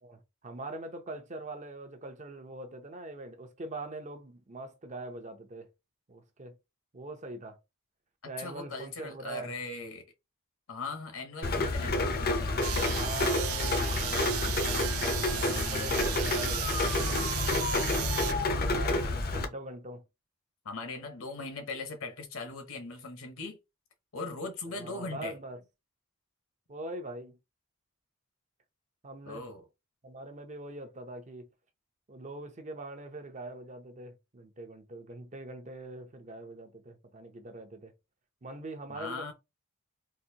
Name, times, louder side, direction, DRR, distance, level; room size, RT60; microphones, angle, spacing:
voice 1, 0.0-5.7 6.1-6.6 6.9-7.6 8.3-9.5 13.0-15.0 15.3-17.0 18.7-20.0 24.7-25.6 26.7-27.4 29.0-29.5 30.0-31.5 32.1-37.9 38.4-39.3, right 2 dB, 35° right, 0.7 m, -43 dB
voice 2, 8.2-10.0 10.7-12.7 17.7-19.2 20.6-23.6 24.1-25.4 29.2-29.7 38.9-39.3, left 3 dB, 70° left, 1.1 m, -40 dB
Rain, 11.4-19.4, left 2 dB, 45° left, 0.7 m, -29 dB
sound 1, 12.6-18.3, right 15 dB, 70° right, 0.3 m, -35 dB
4.0 x 2.6 x 2.8 m
head